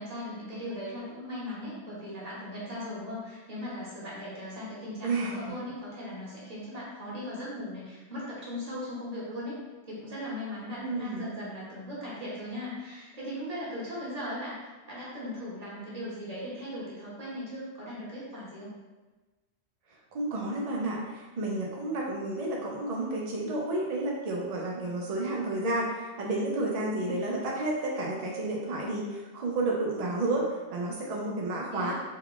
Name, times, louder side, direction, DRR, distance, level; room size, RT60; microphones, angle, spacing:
voice 1, 0.0-9.6 9.9-14.6 14.9-18.7 27.0-27.1 31.7-31.9, left 1 dB, 35° right, -7 dB, 1.1 m, -38 dB
voice 2, 5.0-5.5 10.8-11.4 20.1-30.4 30.7-31.9, right 2 dB, 65° right, -3 dB, 0.3 m, -31 dB
3.2 x 2.3 x 3.6 m, 1.2 s
omnidirectional pair, 1.2 m